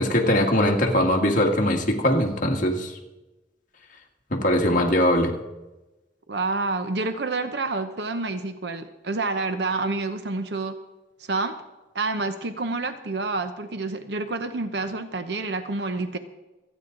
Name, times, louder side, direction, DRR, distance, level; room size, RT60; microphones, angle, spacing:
voice 1, 0.0-3.0 4.3-5.3, left 1 dB, 45° left, 1 dB, 1.8 m, -21 dB
voice 2, 6.3-10.8 11.3-11.5 11.9-16.2, right 3 dB, 70° right, 9 dB, 0.9 m, -28 dB
27.0 x 9.2 x 3.9 m, 1.1 s
head